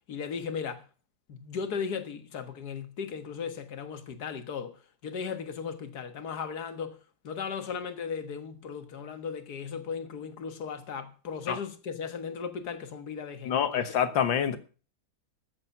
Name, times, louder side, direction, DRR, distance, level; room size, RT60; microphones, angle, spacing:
voice 1, 0.1-0.8 1.3-4.8 5.0-7.0 7.2-14.0, left 6 dB, 60° left, 1.9 m, -36 dB
voice 2, 13.5-14.6, left 8 dB, 85° left, 2.0 m, -26 dB
14.0 x 7.5 x 7.2 m
omnidirectional pair, 2.0 m